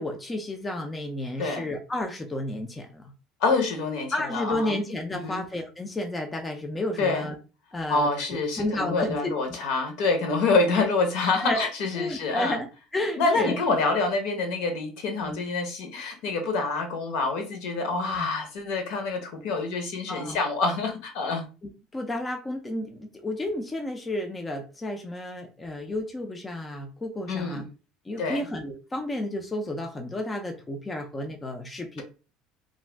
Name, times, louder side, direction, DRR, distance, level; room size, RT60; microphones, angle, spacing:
voice 1, 0.0-3.1 4.1-7.4 7.7-8.1 8.6-9.3 10.7-10.9 11.3-11.7 11.9-12.7 12.9-13.6 15.2-15.4 18.1-18.3 20.1-20.4 21.9-27.6 28.1-32.0, left 1 dB, 15° left, 0.3 m, -32 dB
voice 2, 1.4-1.7 3.4-4.8 5.2-5.4 7.0-7.3 7.9-12.6 13.2-21.5 27.3-27.6 28.2-28.5, left 3 dB, 65° left, 0.8 m, -26 dB
2.4 x 2.2 x 3.2 m
cardioid pair, 160°, 0 cm